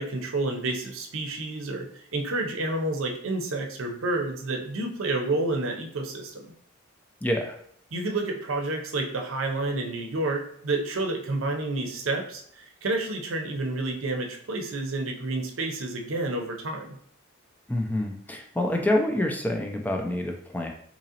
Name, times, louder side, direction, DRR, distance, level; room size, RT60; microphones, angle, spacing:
voice 1, 0.0-6.5 7.9-17.0, right 2 dB, 75° right, 3 dB, 0.6 m, -29 dB
voice 2, 7.2-7.6 17.7-20.7, left 1 dB, 10° left, 2 dB, 0.3 m, -27 dB
3.7 x 2.9 x 2.8 m, 0.65 s
head